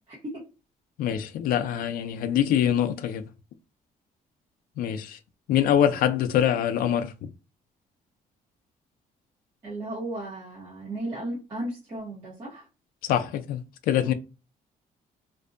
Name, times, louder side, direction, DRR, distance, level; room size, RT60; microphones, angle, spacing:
voice 1, 0.1-0.4 5.9-6.0 9.6-12.7, right 1 dB, 30° right, 0.9 m, -35 dB
voice 2, 1.0-3.2 4.8-5.2 5.5-7.3 13.0-14.1, left 10 dB, 75° left, 0.4 m, -24 dB
2.6 x 2.1 x 2.4 m
cardioid pair, 160°, 15 cm